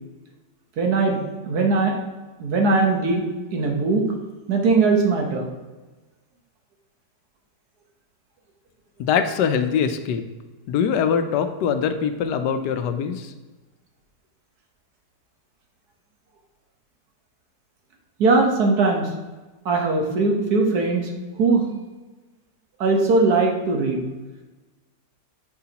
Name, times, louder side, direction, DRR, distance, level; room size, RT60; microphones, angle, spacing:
voice 1, 0.8-1.2 1.4-1.9 2.4-3.2 3.5-4.1 4.5-5.5 18.2-19.1 19.6-21.1 21.4-21.7 22.8-24.1, right 3 dB, 65° right, 2 dB, 1.5 m, -20 dB
voice 2, 9.0-10.2 10.7-13.3, left 7 dB, 80° left, 8 dB, 1.2 m, -23 dB
9.5 x 5.5 x 2.9 m, 1.2 s
omnidirectional pair, 1.8 m